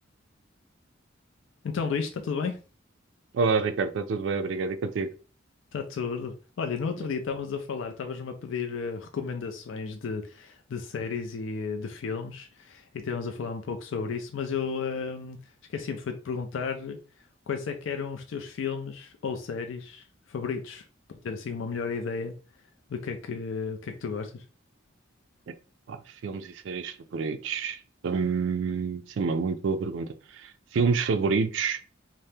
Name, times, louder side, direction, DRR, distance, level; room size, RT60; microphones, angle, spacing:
voice 1, 1.6-2.6 5.7-15.4 15.7-17.0 17.5-22.3 22.9-24.4, left 5 dB, 75° left, 0.4 m, -33 dB
voice 2, 3.3-5.1 25.9-30.1 30.3-31.8, right 5 dB, 70° right, 0.3 m, -28 dB
2.7 x 2.0 x 3.3 m
head